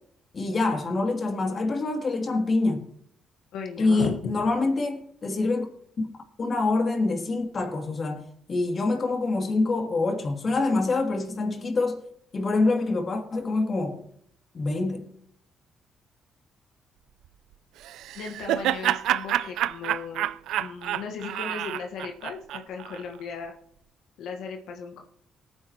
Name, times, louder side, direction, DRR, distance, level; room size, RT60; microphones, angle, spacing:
voice 1, 0.3-2.8 3.8-5.7 6.0-6.1 6.4-8.2 8.5-12.0 12.3-14.0 14.5-15.1, left 3 dB, 40° left, 2.6 m, -25 dB
voice 2, 3.5-4.2 18.1-20.3 20.6-23.5 24.2-25.0, left 6 dB, 85° left, 1.4 m, -36 dB
Laughter, 17.8-23.0, right 12 dB, 85° right, 0.4 m, -28 dB
19.5 x 9.7 x 3.0 m
cardioid pair, 90°, 0 cm